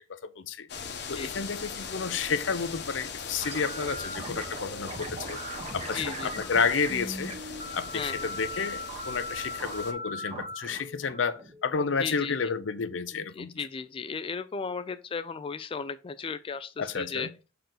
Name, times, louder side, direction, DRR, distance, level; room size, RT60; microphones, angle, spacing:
voice 1, 0.1-0.7 1.1-5.4 5.7-7.3 7.7-13.5 16.8-17.3, left 5 dB, 85° left, 0.7 m, -31 dB
sound 1, 0.7-9.9, left 5 dB, 60° left, 1.0 m, -40 dB
sound 2, 3.4-12.3, right 1 dB, 35° right, 1.1 m, -39 dB
voice 2, 5.8-6.5 7.9-8.3 12.0-12.5 13.3-17.3, left 5 dB, 30° left, 0.3 m, -36 dB
6.3 x 4.6 x 3.9 m
head